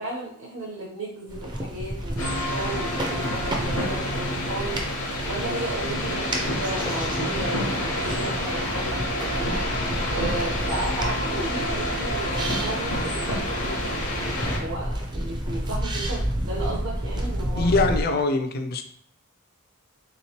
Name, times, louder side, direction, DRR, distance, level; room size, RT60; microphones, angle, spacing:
voice 1, 0.0-4.8 5.3-9.7 10.1-17.7, right 2 dB, 70° right, -7 dB, 0.8 m, -34 dB
sound 1, 1.3-18.0, right 1 dB, 20° right, 0.4 m, -31 dB
sound 2, 2.2-14.6, left 1 dB, 75° left, 0.8 m, -28 dB
voice 2, 17.5-18.8, left 3 dB, 45° left, 8 dB, 0.3 m, -23 dB
3.4 x 3.0 x 2.8 m, 0.63 s
head